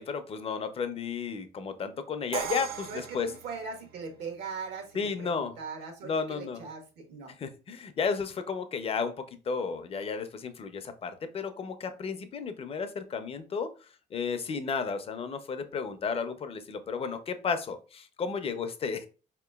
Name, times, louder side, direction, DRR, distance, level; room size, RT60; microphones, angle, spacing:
voice 1, 0.0-3.3 4.9-5.6 6.0-6.6 7.4-9.1 9.5-13.7 14.1-19.1, left 5 dB, 35° left, 9 dB, 0.5 m, -33 dB
Crash cymbal, 2.3-4.2, right 8 dB, 65° right, 0.5 m, -38 dB
voice 2, 2.9-7.3, right 5 dB, 85° right, 3 dB, 1.2 m, -40 dB
4.4 x 2.9 x 2.2 m, 0.35 s
cardioid pair, 110°, 17 cm